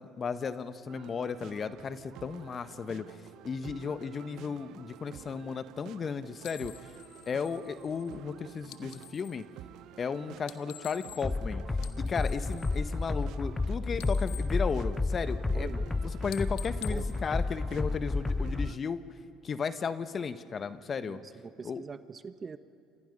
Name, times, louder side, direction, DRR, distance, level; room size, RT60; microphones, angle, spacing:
voice 1, 0.0-3.0 3.4-6.7 7.3-9.4 10.0-11.6 12.0-19.1 19.4-21.2 21.6-21.8, left 6 dB, 40° left, 12 dB, 1.2 m, -35 dB
sound 1, 0.9-18.8, right 13 dB, 65° right, 0.7 m, -50 dB
sound 2, 6.4-9.4 10.3-11.5 11.7-13.6 13.9-15.4 15.8-16.0 16.3-18.1, left 15 dB, 70° left, 1.0 m, -49 dB
sound 3, 11.2-18.7, left 3 dB, 20° left, 0.5 m, -31 dB
voice 2, 15.5-15.9 16.9-17.1 21.0-22.6, right 5 dB, 35° right, 12 dB, 1.1 m, -43 dB
28.0 x 27.5 x 5.4 m, 2.4 s
hypercardioid pair, 65°, 0 cm